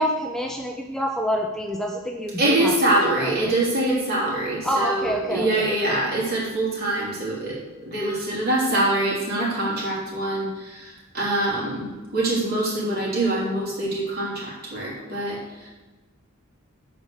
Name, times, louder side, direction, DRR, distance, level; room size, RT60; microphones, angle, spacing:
voice 1, 0.0-3.6 4.6-5.7, equal, ahead, 1 dB, 0.5 m, -27 dB
voice 2, 2.4-15.7, right 1 dB, 45° right, -5 dB, 3.4 m, -24 dB
8.4 x 5.4 x 6.4 m, 1.2 s
head